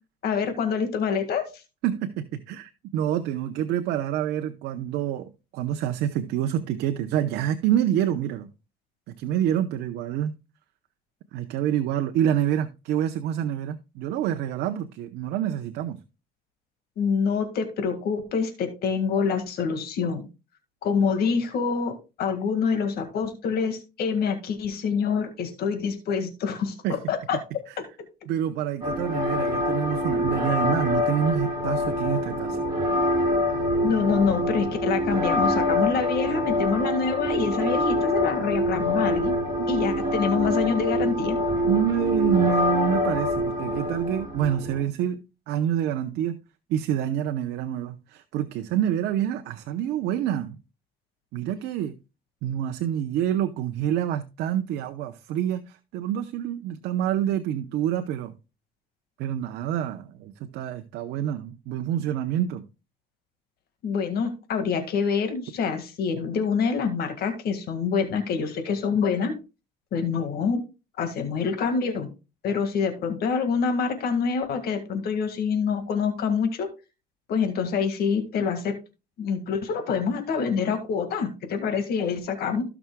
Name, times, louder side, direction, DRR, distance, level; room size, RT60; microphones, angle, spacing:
voice 1, 0.2-1.4 17.0-20.2 20.8-21.9 22.2-27.4 33.8-39.3 39.7-41.4 63.8-69.3 69.9-70.6 71.0-72.1 72.4-76.7 77.3-78.7 79.2-82.6, left 6 dB, 65° left, 1.8 m, -26 dB
voice 2, 1.8-8.5 9.1-10.4 11.3-16.0 26.8-27.0 27.7-27.8 28.3-32.7 41.7-45.2 45.5-46.4 46.7-50.6 51.3-52.0 52.4-58.3 59.2-62.6, right 10 dB, 80° right, 0.8 m, -27 dB
sound 1, 28.8-44.8, left 1 dB, 25° right, 5.2 m, -25 dB
16.0 x 6.0 x 2.2 m
cardioid pair, 110°, 17 cm